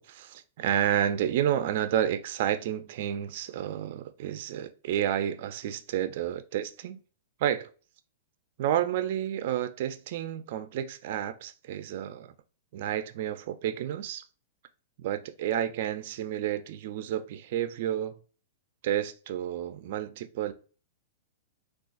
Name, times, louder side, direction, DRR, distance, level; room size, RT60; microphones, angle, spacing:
voice 1, 0.0-7.0 7.4-7.7 8.6-12.3 12.7-14.2 15.0-18.2 18.8-20.5, right 10 dB, 55° right, 0.4 m, -30 dB
3.8 x 2.3 x 2.4 m
hypercardioid pair, 140°, 0 cm